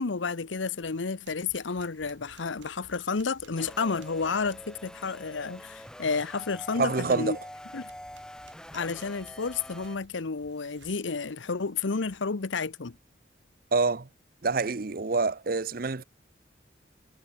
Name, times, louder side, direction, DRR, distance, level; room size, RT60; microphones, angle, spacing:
voice 1, 0.0-7.4 7.7-7.9 8.7-13.0, left 4 dB, 90° left, 0.9 m, -31 dB
sound 1, 1.0-4.7 7.8-11.0 11.8-12.3, right 4 dB, 80° right, 3.9 m, -58 dB
sound 2, 3.5-10.0, equal, 5° left, 1.0 m, -45 dB
voice 2, 6.8-7.4 13.7-14.1 14.4-16.0, right 3 dB, 50° right, 0.8 m, -26 dB
head